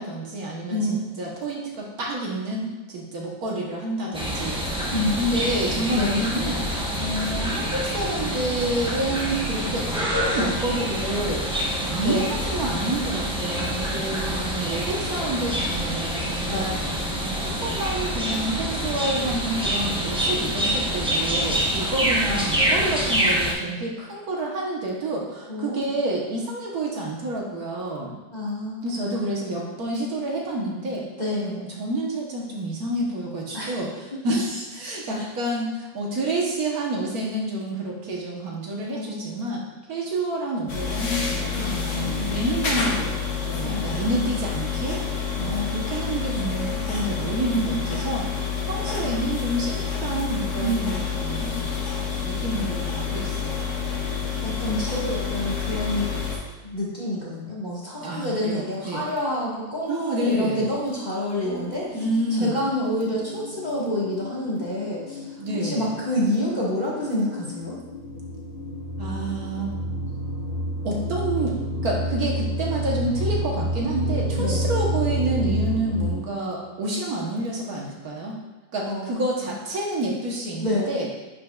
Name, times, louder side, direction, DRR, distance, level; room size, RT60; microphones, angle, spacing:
voice 1, 0.0-11.5 11.8-16.7 17.1-28.1 28.8-31.0 31.4-39.6 39.9-51.8 52.2-53.8 58.0-59.1 59.9-60.7 61.9-62.6 65.4-65.9 69.0-69.8 70.8-71.6 71.8-78.4 78.7-81.1, right 1 dB, 65° right, -3 dB, 1.5 m, -29 dB
sound 1, 4.1-23.5, equal, 5° right, 0.5 m, -26 dB
voice 2, 25.5-25.9 28.3-28.9 31.2-31.6 33.5-33.7 35.1-35.2 38.9-39.5 41.5-42.4 43.6-44.4 45.3-45.8 47.2-48.0 49.0-49.1 50.6-50.9 51.5-51.6 54.4-56.1 56.6-62.0 62.3-65.4 65.6-67.8 74.4-74.6 78.8-79.3 80.6-80.9, left 1 dB, 25° left, -7 dB, 1.5 m, -28 dB
sound 2, 40.7-56.4, left 6 dB, 50° left, 1.2 m, -28 dB
sound 3, 61.4-76.1, right 1 dB, 30° right, 2.5 m, -30 dB
10.5 x 5.1 x 2.3 m, 1.2 s
omnidirectional pair, 1.8 m